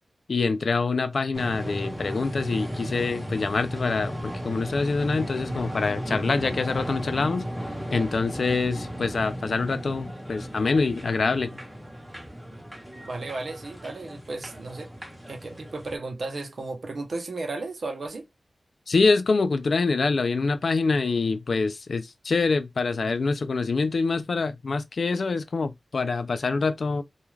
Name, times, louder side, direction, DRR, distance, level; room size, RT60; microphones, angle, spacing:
voice 1, 0.3-7.4 7.9-11.6 18.9-27.0, left 4 dB, 70° left, 0.4 m, -25 dB
sound 1, 1.3-16.0, equal, 10° right, 1.0 m, -35 dB
voice 2, 13.0-14.9 15.3-18.2, right 3 dB, 70° right, 0.6 m, -34 dB
2.4 x 2.3 x 3.1 m
wide cardioid pair, 90°, 0 cm